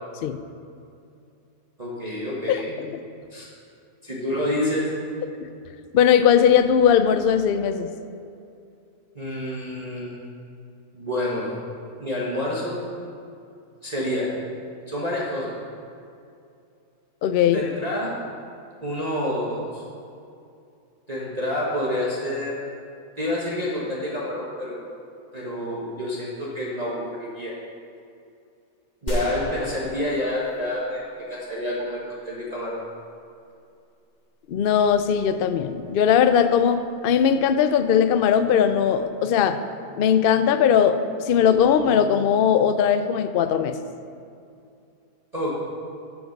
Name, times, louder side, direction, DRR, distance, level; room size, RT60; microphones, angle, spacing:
voice 1, 1.8-2.7 3.3-3.5 4.0-4.9 9.1-10.2 10.9-11.6 12.0-12.8 13.8-14.3 14.9-15.6 17.5-18.1 18.8-19.8 21.1-22.7 23.2-24.8 25.3-27.6 29.0-32.8 45.3-45.5, left 1 dB, 25° right, -6 dB, 1.4 m, -28 dB
voice 2, 2.5-2.9 5.4-5.5 5.9-7.9 17.2-17.6 34.5-39.6 40.0-41.0 41.3-43.7, left 8 dB, 85° left, 10 dB, 0.4 m, -19 dB
sound 1, 29.1-31.4, equal, 30° left, 1.1 m, -34 dB
13.5 x 5.5 x 5.9 m, 2.5 s
omnidirectional pair, 1.6 m